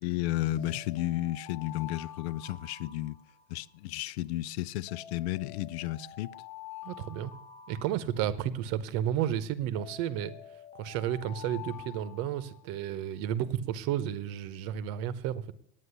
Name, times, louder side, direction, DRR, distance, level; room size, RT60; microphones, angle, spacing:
voice 1, 0.0-3.2 3.5-6.3, left 15 dB, 65° left, 0.6 m, -33 dB
sound 1, 0.6-3.8 4.9-8.6 9.8-13.0, left 11 dB, 20° left, 1.1 m, -48 dB
voice 2, 6.8-7.3 7.7-10.3 10.8-15.4, right 10 dB, 45° right, 1.0 m, -32 dB
9.7 x 9.3 x 8.1 m
supercardioid pair, 150°, 34 cm